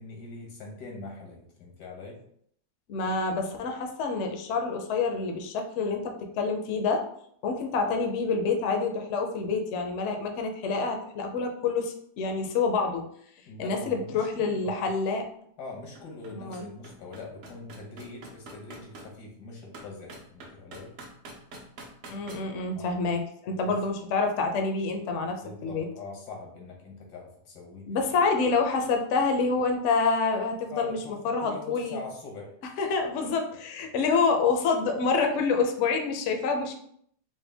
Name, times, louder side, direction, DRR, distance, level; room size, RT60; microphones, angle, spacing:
voice 1, 0.0-2.2 13.5-14.8 15.6-20.9 22.7-22.9 23.5-23.7 25.4-27.9 30.7-32.5, left 3 dB, 85° left, 0 dB, 1.6 m, -43 dB
voice 2, 2.9-7.1 7.4-13.0 13.6-15.3 16.3-16.7 22.1-25.8 27.9-31.0 31.2-32.0 32.8-36.8, left 4 dB, 65° left, 4 dB, 0.7 m, -27 dB
sound 1, 15.2-15.3 15.7-19.1 19.7-22.4, right 2 dB, 60° right, 1.0 m, -45 dB
4.3 x 2.1 x 3.3 m, 0.66 s
omnidirectional pair, 1.7 m